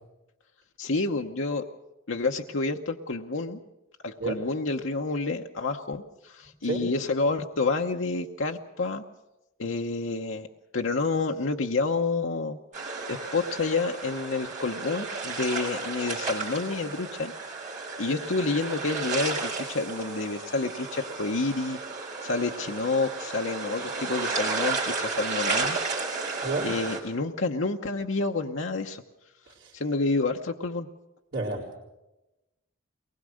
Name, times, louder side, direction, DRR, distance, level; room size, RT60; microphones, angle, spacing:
voice 1, 0.8-1.6 2.1-3.6 4.0-9.0 9.6-10.5 10.7-12.6 13.1-17.3 18.0-21.8 22.2-25.8 26.6-29.0 29.7-30.9, left 3 dB, 65° left, 3 dB, 0.9 m, -29 dB
voice 2, 6.4-6.9 26.4-26.8 29.5-29.7 31.3-31.7, right 3 dB, 55° right, -7 dB, 4.0 m, -31 dB
sound 1, 12.7-27.0, right 4 dB, 40° right, 5.1 m, -33 dB
23.0 x 20.0 x 6.4 m, 0.98 s
head